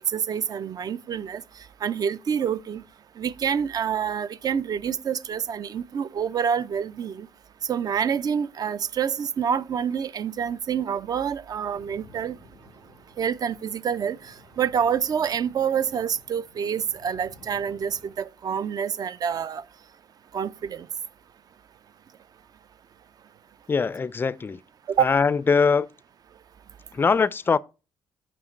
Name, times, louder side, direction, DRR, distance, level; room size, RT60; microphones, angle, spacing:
voice 1, 0.1-1.4 1.8-2.8 3.2-7.3 7.7-12.3 13.2-14.2 14.6-19.6 20.3-20.9 24.9-25.1, right 7 dB, 50° right, 0.4 m, -27 dB
sound 1, 11.7-18.1, left 1 dB, 85° right, 3.5 m, -53 dB
voice 2, 23.7-24.6 25.0-25.9 26.9-27.6, left 5 dB, 25° left, 0.3 m, -22 dB
6.1 x 4.5 x 4.3 m
supercardioid pair, 70°, 9 cm